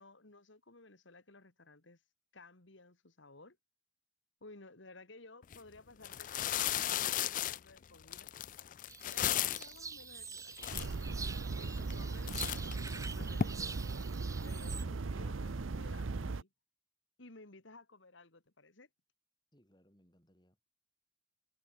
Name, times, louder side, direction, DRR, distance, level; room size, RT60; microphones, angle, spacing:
voice 1, 0.0-2.0 2.3-3.6 4.4-8.3 9.1-11.2 11.6-13.9 14.4-16.5 17.2-18.9, left 2 dB, 75° left, 2.5 m, -56 dB
sound 1, 5.4-5.6 6.0-9.8 10.3-10.4 10.6-11.3 11.8-12.0 12.3-13.4, left 11 dB, 40° left, 0.3 m, -35 dB
sound 2, 8.9-14.8, right 5 dB, 15° right, 1.3 m, -47 dB
sound 3, 10.7-16.4, right 3 dB, 90° right, 0.7 m, -38 dB
voice 2, 19.5-20.7, equal, 20° left, 7.9 m, -68 dB
head